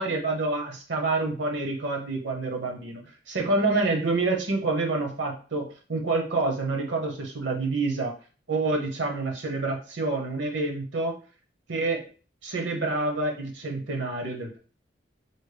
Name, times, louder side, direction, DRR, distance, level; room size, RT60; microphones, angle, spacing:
voice 1, 0.0-3.0 3.3-8.1 8.5-11.2 11.7-12.0 12.4-14.6, right 3 dB, 75° right, 2 dB, 0.8 m, -27 dB
4.1 x 2.0 x 3.3 m, 0.38 s
head